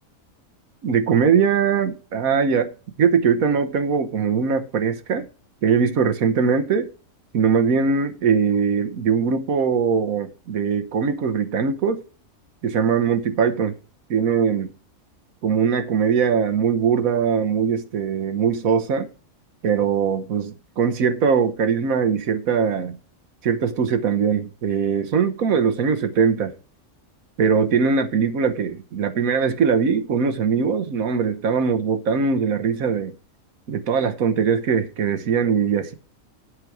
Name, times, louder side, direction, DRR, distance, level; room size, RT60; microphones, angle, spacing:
voice 1, 0.8-2.7 3.0-5.3 5.6-6.9 7.3-12.0 12.6-13.8 14.1-14.7 15.4-19.1 19.6-23.0 23.4-26.5 27.4-33.1 33.7-35.9, right 6 dB, 70° right, 1.3 m, -21 dB
8.1 x 6.2 x 6.0 m
omnidirectional pair, 1.6 m